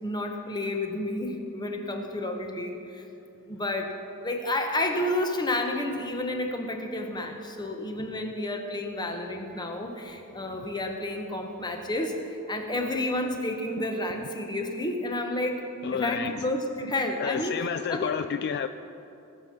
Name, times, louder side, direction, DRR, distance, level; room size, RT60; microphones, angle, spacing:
voice 1, 0.0-3.0 3.5-4.0 4.2-15.6 15.9-18.1, left 1 dB, 20° left, 3 dB, 1.1 m, -30 dB
voice 2, 15.8-16.5 17.2-18.7, left 7 dB, 50° left, 10 dB, 0.3 m, -30 dB
19.0 x 7.7 x 5.8 m, 2.9 s
head